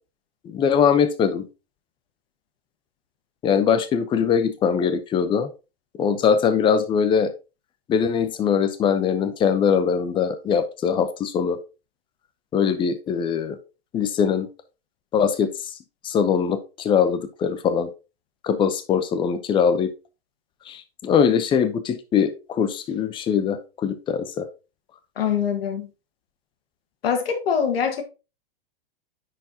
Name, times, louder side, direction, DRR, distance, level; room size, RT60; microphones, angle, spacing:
voice 1, 0.4-1.5 3.4-5.5 6.0-7.3 7.9-11.6 12.5-13.6 13.9-14.5 15.1-15.7 16.0-17.9 18.4-19.9 20.7-24.5, left 7 dB, 15° left, 0.6 m, -22 dB
voice 2, 25.2-25.9 27.0-28.0, left 7 dB, 75° left, 1.7 m, -23 dB
9.9 x 4.5 x 2.8 m
hypercardioid pair, 140°, 30 cm